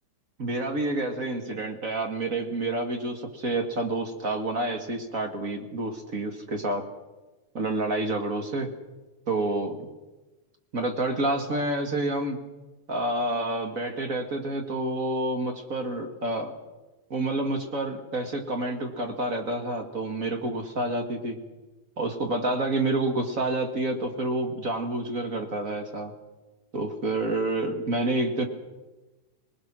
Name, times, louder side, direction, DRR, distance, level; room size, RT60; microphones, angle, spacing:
voice 1, 0.4-6.8 7.5-8.7 9.3-9.8 10.7-12.4 12.9-16.5 17.1-21.4 22.0-26.1 26.7-28.5, right 2 dB, 30° right, 5 dB, 1.6 m, -28 dB
26.5 x 20.0 x 6.3 m, 1.1 s
omnidirectional pair, 4.0 m